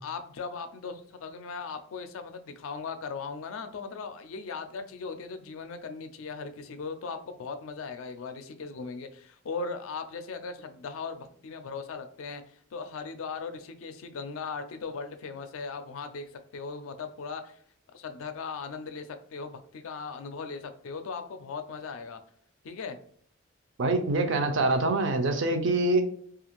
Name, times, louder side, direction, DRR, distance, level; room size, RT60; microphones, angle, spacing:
voice 1, 0.0-12.4 12.7-17.6 17.9-22.2 22.6-23.0, left 4 dB, 75° left, 0.4 m, -38 dB
voice 2, 23.8-26.1, right 2 dB, 60° right, 0.4 m, -25 dB
2.5 x 2.4 x 2.9 m
head